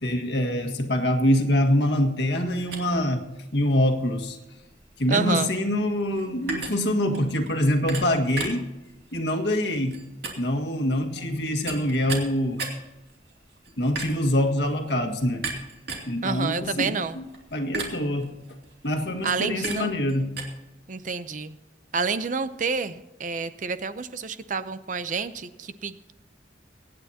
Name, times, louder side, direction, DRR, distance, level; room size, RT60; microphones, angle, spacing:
voice 1, 0.0-3.2 3.5-4.4 5.0-8.7 9.1-10.0 10.4-12.6 13.8-15.5 16.1-17.2 17.5-18.3 18.8-20.3, left 1 dB, 65° left, 3 dB, 1.7 m, -24 dB
sound 1, 2.6-20.4, right 3 dB, 60° right, 2.7 m, -38 dB
voice 2, 5.1-5.5 16.2-17.2 19.2-19.9 20.9-21.6 21.9-26.1, right 5 dB, 40° right, 12 dB, 0.6 m, -29 dB
24.0 x 9.5 x 2.8 m, 1.0 s
head